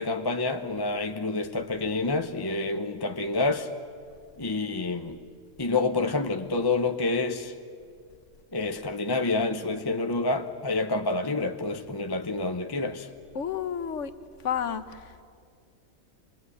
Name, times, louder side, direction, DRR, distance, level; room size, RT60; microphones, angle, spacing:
voice 1, 0.0-3.7 4.4-5.2 5.6-7.5 8.5-13.1, left 3 dB, 20° left, 0.8 m, -28 dB
voice 2, 13.3-14.1 14.4-15.2, left 8 dB, 65° left, 1.4 m, -31 dB
26.5 x 21.0 x 9.8 m
omnidirectional pair, 1.4 m